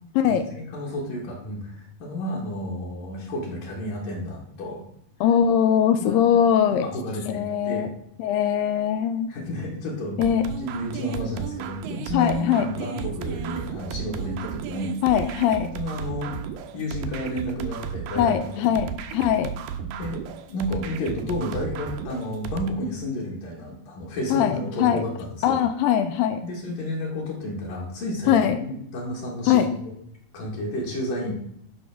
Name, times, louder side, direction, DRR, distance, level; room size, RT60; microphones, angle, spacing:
voice 1, 0.2-4.8 6.0-6.2 6.7-7.9 9.3-14.9 15.6-16.3 16.7-18.8 19.8-25.6 26.4-29.9 30.3-31.3, left 1 dB, 65° left, -3 dB, 3.0 m, -31 dB
voice 2, 5.2-6.9 7.3-7.9 8.2-9.3 10.2-10.4 12.1-12.7 15.0-15.7 18.2-19.5 24.3-25.0 25.4-26.4 28.3-28.6 29.5-29.7, left 9 dB, 85° left, 9 dB, 2.1 m, -21 dB
sound 1, 10.2-22.7, right 9 dB, 80° right, 2.3 m, -34 dB
11.5 x 5.5 x 3.5 m, 0.72 s
omnidirectional pair, 4.5 m